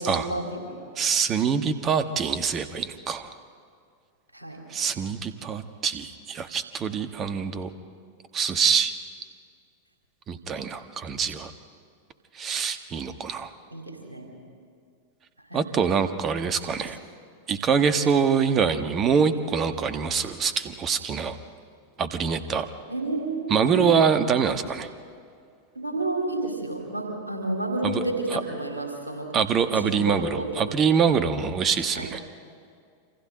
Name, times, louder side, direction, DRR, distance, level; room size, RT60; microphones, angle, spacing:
voice 1, 0.0-1.0 4.3-4.7 13.7-14.3 15.5-15.7 22.9-24.0 25.7-29.3 29.8-30.5 31.9-32.1, right 2 dB, 80° right, 1 dB, 4.1 m, -30 dB
voice 2, 1.0-3.3 4.7-7.7 8.3-8.9 10.3-11.5 12.3-13.5 15.5-17.0 17.5-21.4 22.0-22.7 23.5-24.9 27.8-28.0 28.3-28.4 29.3-32.2, right 6 dB, 25° right, 10 dB, 1.4 m, -24 dB
28.5 x 26.5 x 4.0 m, 2.2 s
figure-of-eight pair, 90°, 0 cm